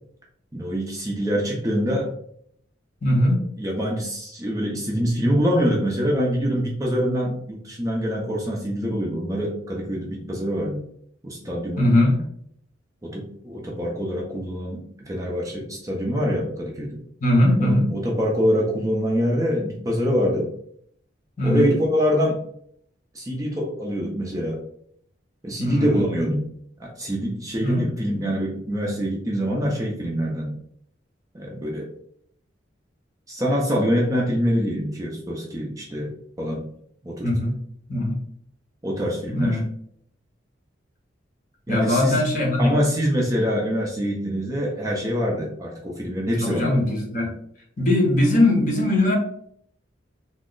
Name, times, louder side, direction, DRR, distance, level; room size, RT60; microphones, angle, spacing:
voice 1, 0.5-2.1 3.6-10.8 11.2-11.9 13.0-17.0 17.6-20.5 21.4-22.4 23.1-24.6 25.4-26.5 26.8-30.5 31.3-31.9 33.3-36.1 36.4-36.7 37.0-37.3 38.8-39.6 41.7-42.3 42.6-46.8, equal, 20° right, -2 dB, 0.5 m, -25 dB
voice 2, 3.0-3.4 11.8-12.2 17.2-17.8 21.4-21.7 25.6-26.0 27.6-27.9 37.2-37.5 37.9-38.2 39.3-39.6 41.7-42.7 46.4-47.3 47.8-49.2, left 1 dB, 40° left, -1 dB, 0.9 m, -20 dB
2.9 x 2.0 x 3.7 m, 0.67 s
head